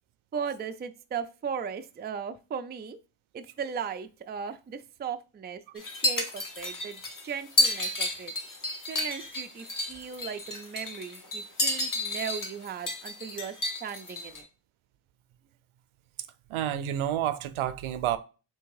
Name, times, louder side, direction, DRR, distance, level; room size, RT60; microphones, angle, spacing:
voice 1, 0.3-3.0 3.3-8.3 8.9-13.6 13.8-14.4, right 7 dB, 20° right, 0.4 m, -37 dB
sound 1, 5.8-14.4, left 1 dB, 40° left, 1.2 m, -31 dB
voice 2, 16.5-18.2, right 11 dB, 75° right, 0.6 m, -29 dB
3.5 x 2.8 x 4.7 m
cardioid pair, 70°, 50 cm